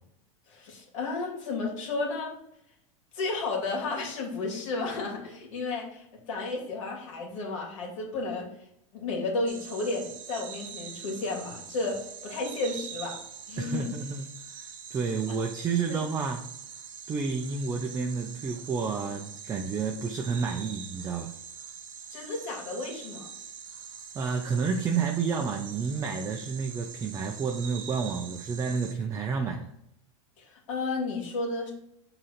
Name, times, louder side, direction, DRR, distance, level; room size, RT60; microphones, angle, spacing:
voice 1, 0.5-2.3 3.1-8.5 8.9-13.2 13.5-13.9 15.3-15.4 15.9-16.0 22.1-23.3 30.4-31.7, left 3 dB, 75° left, 0 dB, 2.4 m, -32 dB
sound 1, 9.5-28.9, right 7 dB, 85° right, 0.9 m, -44 dB
voice 2, 13.6-16.5 17.1-21.3 24.1-29.7, right 5 dB, 20° right, 3 dB, 0.5 m, -30 dB
6.2 x 3.9 x 4.1 m, 0.78 s
supercardioid pair, 135°, 16 cm